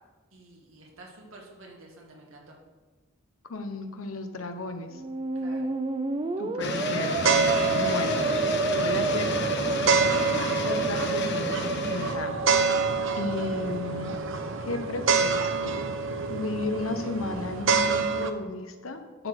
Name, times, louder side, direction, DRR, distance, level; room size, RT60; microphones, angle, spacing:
voice 1, 0.3-2.6 5.3-5.7, right 2 dB, 80° right, -1 dB, 2.1 m, -49 dB
voice 2, 3.5-5.0 6.4-7.2 7.7-8.2 8.7-9.4 10.6-12.4 13.1-14.2 14.6-15.8 16.3-19.3, left 2 dB, 85° left, 7 dB, 1.0 m, -34 dB
Musical instrument, 4.9-13.0, right 3 dB, 25° right, 0.5 m, -30 dB
sound 1, 6.6-12.1, left 3 dB, 55° left, 0.9 m, -32 dB
sound 2, 7.1-18.3, right 4 dB, 65° right, 0.7 m, -27 dB
11.5 x 4.1 x 6.4 m, 1.3 s
head